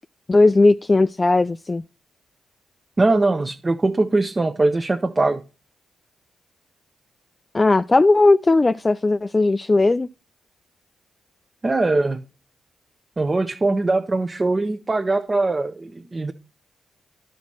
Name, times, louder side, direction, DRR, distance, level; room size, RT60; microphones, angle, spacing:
voice 1, 0.3-1.8 7.5-10.1, left 2 dB, 30° left, 0.3 m, -17 dB
voice 2, 3.0-5.4 11.6-12.2 13.2-16.3, right 2 dB, 30° right, 0.8 m, -21 dB
10.5 x 4.1 x 6.1 m
supercardioid pair, 55°, 0 cm